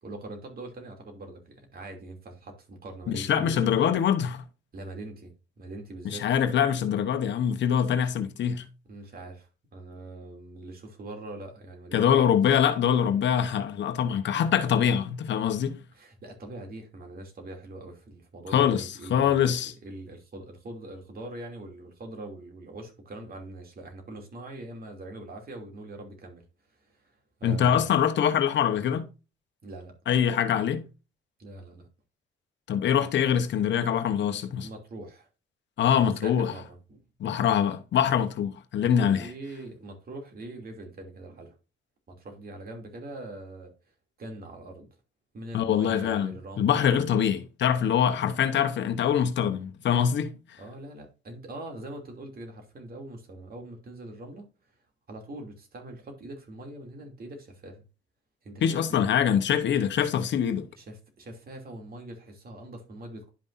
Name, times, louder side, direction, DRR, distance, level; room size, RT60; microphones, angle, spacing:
voice 1, 0.0-3.7 4.7-6.3 8.9-12.0 12.3-12.4 15.9-27.9 29.6-29.9 31.4-31.9 34.6-35.3 36.2-37.0 38.8-41.5 42.1-43.7 44.2-44.9 45.3-47.0 50.6-54.5 55.1-57.8 58.4-59.1 60.7-63.3, right 2 dB, 50° right, 2.9 m, -42 dB
voice 2, 3.1-4.4 6.0-8.7 11.9-15.8 18.5-19.7 27.4-29.1 30.1-30.8 32.7-34.7 35.8-36.5 37.2-39.2 45.5-50.6 58.6-60.7, left 8 dB, 65° left, 1.0 m, -24 dB
11.5 x 5.4 x 2.6 m
cardioid pair, 90°, 20 cm